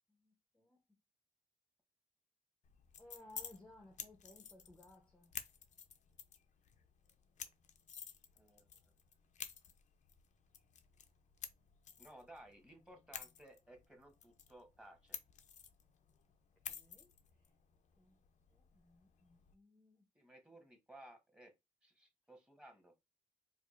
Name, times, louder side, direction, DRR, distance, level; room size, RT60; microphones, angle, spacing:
voice 1, 0.1-0.8 3.0-5.3 16.6-17.1 18.0-18.2 18.5-20.0, left 1 dB, 10° left, 0.7 m, -61 dB
sound 1, 2.6-19.5, left 8 dB, 60° left, 0.5 m, -53 dB
voice 2, 8.4-8.7 12.0-15.2 20.1-21.5 21.8-22.9, right 1 dB, 5° right, 1.1 m, -58 dB
4.7 x 2.4 x 2.4 m
cardioid pair, 100°, 14 cm